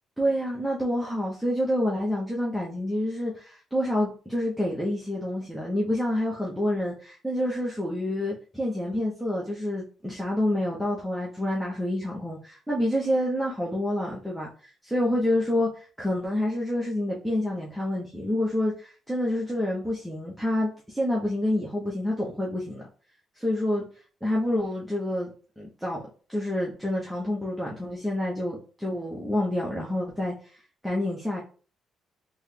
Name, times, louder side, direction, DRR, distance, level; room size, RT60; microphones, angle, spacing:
voice 1, 0.2-14.5 14.8-22.8 23.4-23.8 24.2-26.0 26.3-30.3 30.8-31.4, left 1 dB, ahead, -4 dB, 0.8 m, -28 dB
3.7 x 2.2 x 3.3 m, 0.38 s
cardioid pair, 90°, 0 cm